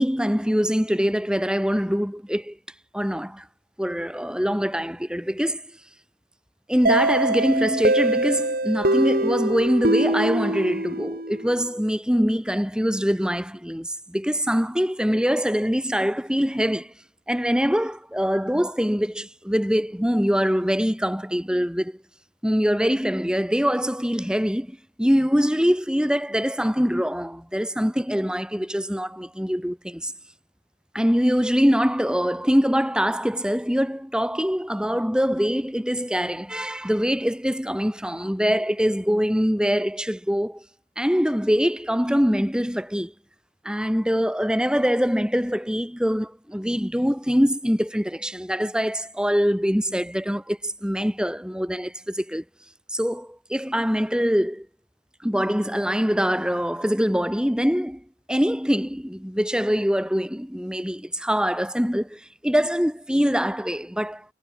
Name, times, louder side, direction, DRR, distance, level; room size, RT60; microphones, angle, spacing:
voice 1, 0.0-2.6 2.9-3.4 3.8-5.6 6.7-16.9 17.3-22.0 22.4-30.1 30.9-40.6 41.0-43.1 43.6-52.4 52.9-54.7 55.2-58.0 58.3-64.2, equal, 5° right, 7.6 m, -23 dB
sound 1, 6.9-11.5, right 2 dB, 55° right, 6.1 m, -23 dB
head